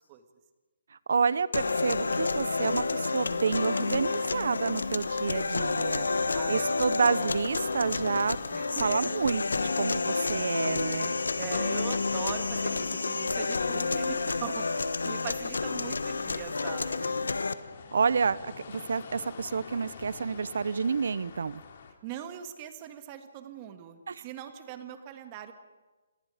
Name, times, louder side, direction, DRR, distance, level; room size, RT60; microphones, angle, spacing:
voice 1, 0.9-6.1 6.5-8.4 8.8-11.2 17.9-18.4 18.7-21.6 24.1-24.2, right 5 dB, 70° right, 18 dB, 0.9 m, -29 dB
sound 1, 1.5-17.5, left 4 dB, 90° left, 1.1 m, -30 dB
sound 2, 3.7-21.9, left 6 dB, 50° left, 2.8 m, -48 dB
voice 2, 6.1-6.7 8.5-8.9 10.7-17.2 22.0-25.5, right 10 dB, 30° right, 8 dB, 1.8 m, -41 dB
30.0 x 19.0 x 5.1 m, 1.2 s
hypercardioid pair, 155°, 0 cm